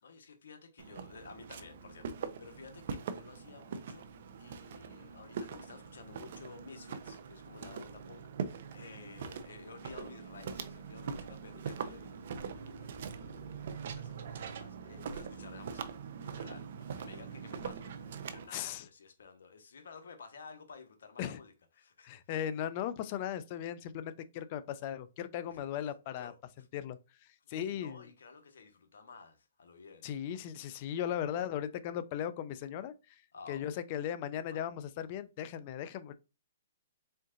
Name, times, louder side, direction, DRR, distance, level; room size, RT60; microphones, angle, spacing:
voice 1, 0.0-4.1 4.4-15.9 16.2-22.1 25.5-25.6 26.2-26.7 27.4-30.1 33.3-33.7 34.5-34.6, left 5 dB, 75° left, 1.2 m, -53 dB
Walk footsteps, 0.8-18.5, right 6 dB, 55° right, 0.6 m, -43 dB
voice 2, 18.5-18.9 21.2-21.4 22.0-26.3 26.7-27.0 27.5-28.1 30.0-32.9 33.5-36.1, left 10 dB, 40° left, 0.5 m, -37 dB
4.5 x 3.7 x 2.4 m
hypercardioid pair, 145°, 0 cm